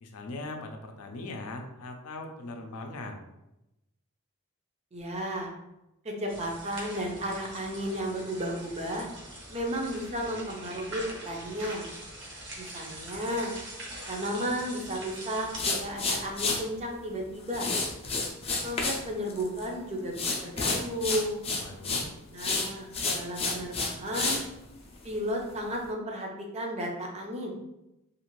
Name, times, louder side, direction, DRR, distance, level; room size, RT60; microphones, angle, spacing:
voice 1, 0.0-3.2 21.6-22.1, left 2 dB, 80° left, 4 dB, 0.5 m, -40 dB
voice 2, 4.9-5.5 6.0-9.1 9.5-11.9 12.6-13.6 14.1-17.7 18.6-21.4 22.3-24.5 25.0-27.6, equal, 30° right, 0 dB, 0.5 m, -33 dB
sound 1, 6.3-15.6, right 1 dB, 55° right, 0.8 m, -43 dB
sound 2, 15.5-16.6 17.5-19.0 19.3-19.7 20.1-22.1 22.4-24.4, left 3 dB, 25° left, 0.4 m, -29 dB
2.5 x 2.5 x 3.0 m, 0.92 s
head